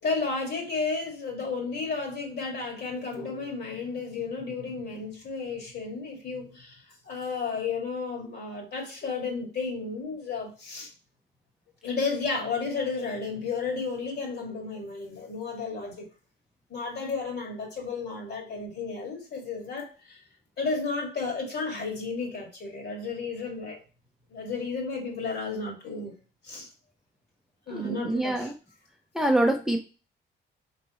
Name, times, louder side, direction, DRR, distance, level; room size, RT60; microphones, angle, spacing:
voice 1, 0.0-10.9 11.8-16.1 16.7-20.2 20.6-23.8 24.3-26.1 26.4-26.7 27.7-28.5, left 4 dB, 55° left, 2.0 m, -33 dB
voice 2, 27.7-28.5 29.1-29.8, right 1 dB, 5° right, 0.6 m, -25 dB
4.1 x 3.3 x 3.0 m
cardioid pair, 90°, 20 cm